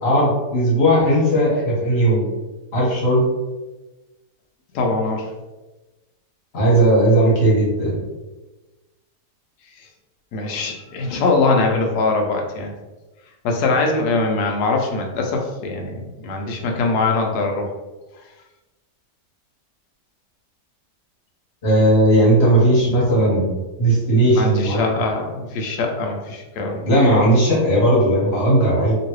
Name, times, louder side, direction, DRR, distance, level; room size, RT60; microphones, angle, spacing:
voice 1, 0.0-2.3 2.7-3.2 6.5-8.0 21.6-25.0 26.8-29.0, right 1 dB, 40° left, -5 dB, 1.3 m, -17 dB
voice 2, 4.7-5.3 10.3-12.7 13.4-17.7 24.2-26.9, left 3 dB, 70° left, 1 dB, 1.1 m, -22 dB
3.0 x 2.9 x 3.0 m, 1.1 s
omnidirectional pair, 1.8 m